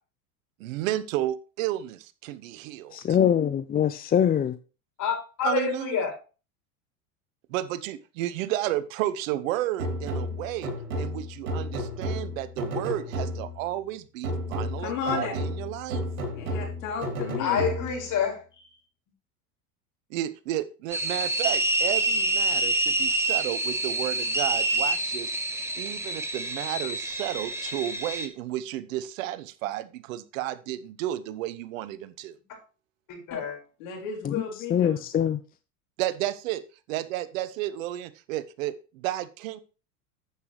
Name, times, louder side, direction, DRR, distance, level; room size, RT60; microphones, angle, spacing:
voice 1, 0.6-3.0 5.4-6.0 7.5-10.7 11.0-16.0 20.1-25.3 25.8-32.4 36.0-36.6 36.9-39.6, right 14 dB, 70° right, 1.0 m, -32 dB
voice 2, 2.9-4.6 34.2-34.4 34.7-35.4, left 9 dB, 20° left, 0.5 m, -23 dB
voice 3, 5.0-6.1 17.4-18.7 33.1-33.6, left 7 dB, 45° left, 5.5 m, -28 dB
sound 1, 9.8-13.7 14.2-18.1, equal, 85° right, 3.1 m, -32 dB
voice 4, 14.8-15.3 16.3-17.6 33.3-33.4 33.8-35.0, left 6 dB, 70° left, 4.3 m, -33 dB
sound 2, 20.9-28.3, right 2 dB, 5° right, 1.7 m, -27 dB
9.9 x 8.2 x 3.2 m
hypercardioid pair, 90°, 42 cm